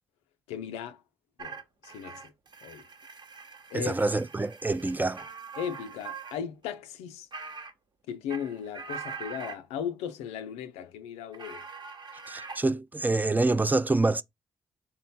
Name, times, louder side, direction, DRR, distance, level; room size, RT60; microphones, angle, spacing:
voice 1, 0.5-1.0 1.4-2.2 2.6-2.8 3.7-3.9 5.6-7.3 8.1-11.6, left 8 dB, 90° left, 0.4 m, -37 dB
sound 1, 1.4-6.4 6.6-6.7 7.3-7.7 8.1-9.6 11.3-12.6, right 5 dB, 45° right, 0.9 m, -43 dB
voice 2, 3.7-5.2 12.3-14.2, right 2 dB, 15° right, 0.4 m, -26 dB
3.7 x 2.1 x 4.0 m
supercardioid pair, 45°, 11 cm